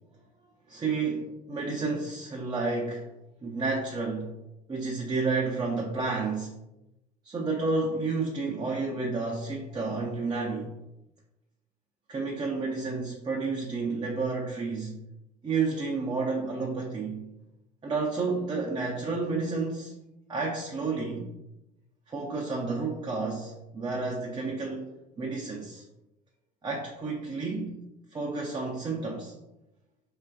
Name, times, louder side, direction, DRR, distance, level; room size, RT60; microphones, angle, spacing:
voice 1, 0.7-3.0 3.4-4.3 4.7-6.5 7.2-10.7 12.1-15.0 15.4-17.3 17.8-19.9 20.3-21.3 22.1-24.9 25.2-25.8 26.6-27.8 28.1-29.3, right 3 dB, 20° right, -2 dB, 0.5 m, -31 dB
3.1 x 2.3 x 2.3 m, 0.93 s
hypercardioid pair, 65°, 21 cm